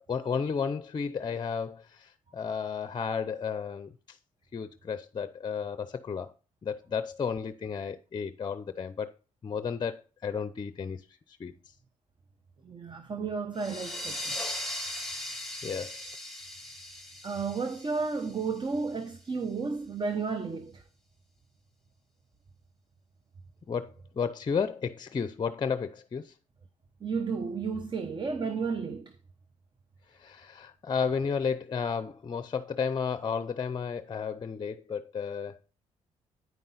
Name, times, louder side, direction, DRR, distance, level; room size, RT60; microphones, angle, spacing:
voice 1, 0.0-4.2 4.5-6.3 6.6-9.1 9.4-11.0 11.4-11.5 15.6-16.1 23.7-26.3 30.1-35.6, left 6 dB, 35° left, 0.6 m, -33 dB
voice 2, 12.6-14.3 17.2-20.8 27.0-29.1, right 4 dB, 35° right, 0.9 m, -32 dB
sound 1, 13.6-18.9, left 1 dB, ahead, 1.9 m, -39 dB
9.4 x 5.3 x 3.9 m
supercardioid pair, 70°, 13 cm